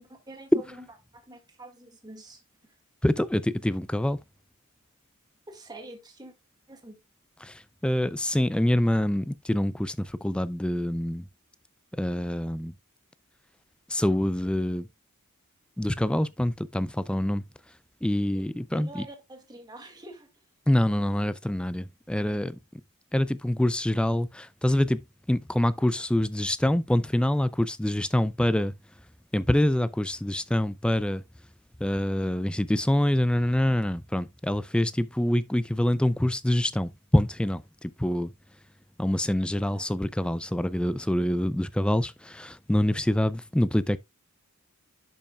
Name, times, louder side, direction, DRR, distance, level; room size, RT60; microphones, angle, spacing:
voice 1, 0.3-0.6 1.1-2.4 5.5-6.3 6.7-7.0 18.3-18.4 18.7-20.3 39.6-39.9, right 2 dB, 20° right, 1.8 m, -45 dB
voice 2, 3.0-4.2 7.4-11.3 11.9-12.7 13.9-14.9 15.8-17.4 18.0-19.1 20.7-22.6 23.1-28.7 29.3-31.2 31.8-38.3 39.0-44.0, left 1 dB, 5° left, 0.3 m, -25 dB
11.0 x 5.4 x 2.3 m
head